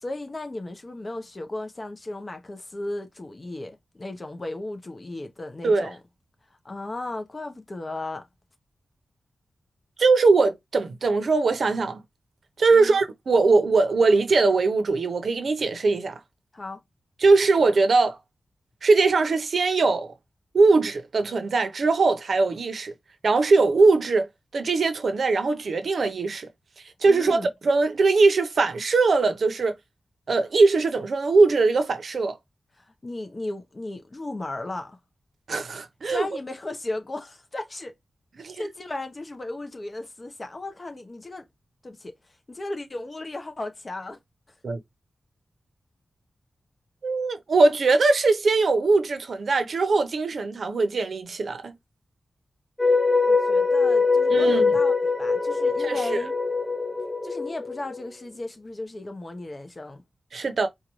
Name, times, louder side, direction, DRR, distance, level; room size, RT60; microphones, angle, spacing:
voice 1, 0.0-6.0 6.6-8.3 12.7-13.0 16.5-16.8 27.0-27.5 32.8-35.0 36.0-37.9 38.6-41.5 41.8-42.1 42.5-44.2 53.3-54.9 55.2-56.3 57.2-60.0, left 2 dB, 30° left, 0.9 m, -35 dB
voice 2, 10.0-12.0 12.6-16.2 17.2-18.2 18.8-20.1 20.5-22.9 23.2-24.3 24.5-26.5 27.0-29.7 30.3-32.4 35.5-36.3 38.4-38.6 44.6-44.8 47.0-51.7 54.3-54.7 55.8-56.2 60.3-60.7, right 3 dB, 65° right, 0.8 m, -21 dB
sound 1, 52.8-58.0, left 4 dB, 10° left, 0.4 m, -22 dB
4.5 x 2.4 x 2.9 m
wide cardioid pair, 135°, 0 cm